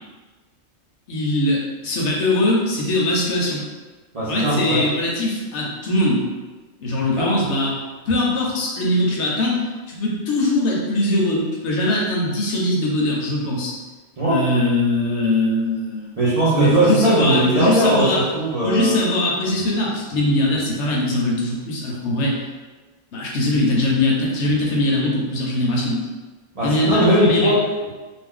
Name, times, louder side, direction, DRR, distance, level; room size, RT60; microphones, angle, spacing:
voice 1, 1.1-1.6 1.8-3.6 4.3-6.2 6.8-7.8 8.1-13.7 14.2-16.2 16.5-18.2 18.6-22.4 23.1-26.0 26.6-27.5, left 1 dB, 65° left, -3 dB, 0.9 m, -21 dB
voice 2, 4.1-4.8 7.1-7.3 14.2-14.4 16.2-19.0 26.5-27.9, right 1 dB, 50° right, -10 dB, 0.4 m, -19 dB
2.5 x 2.1 x 3.6 m, 1.3 s
omnidirectional pair, 1.4 m